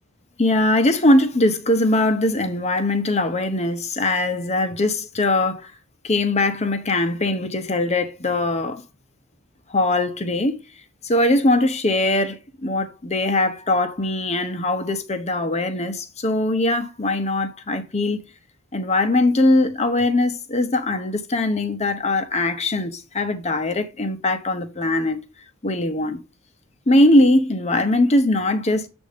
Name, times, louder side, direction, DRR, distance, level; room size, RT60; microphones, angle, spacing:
voice 1, 0.4-5.7 6.0-8.8 9.7-10.6 11.0-18.2 18.7-25.2 25.6-26.2 26.9-28.9, left 1 dB, 30° left, 0.7 m, -21 dB
7.5 x 2.6 x 5.0 m
head